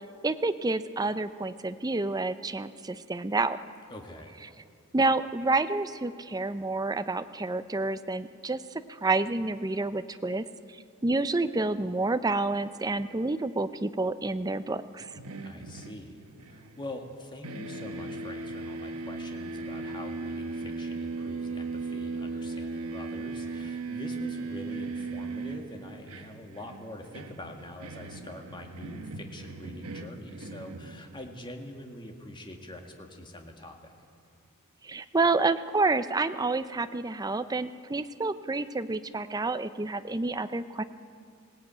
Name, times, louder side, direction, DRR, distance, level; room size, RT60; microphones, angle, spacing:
voice 1, 0.2-3.6 4.9-8.6 9.0-10.4 11.0-15.1 34.8-40.8, right 3 dB, 20° right, 11 dB, 0.6 m, -29 dB
voice 2, 3.9-4.4 15.4-33.9, left 1 dB, 20° left, 3 dB, 1.9 m, -44 dB
sound 1, 15.0-17.2 17.4-31.4, right 3 dB, 90° right, 1.1 m, -38 dB
20.5 x 17.0 x 8.9 m, 2.3 s
head